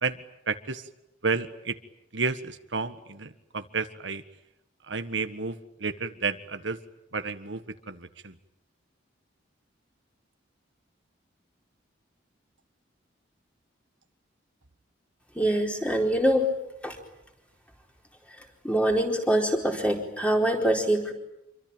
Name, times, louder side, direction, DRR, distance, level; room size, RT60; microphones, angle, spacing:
voice 1, 0.0-0.8 1.2-1.8 2.1-4.2 4.9-6.8 7.1-8.3, right 4 dB, 75° right, 9 dB, 1.5 m, -31 dB
voice 2, 15.4-16.5 16.8-17.0 18.6-21.1, right 1 dB, 5° left, 2 dB, 4.4 m, -24 dB
27.0 x 24.5 x 9.0 m, 0.86 s
head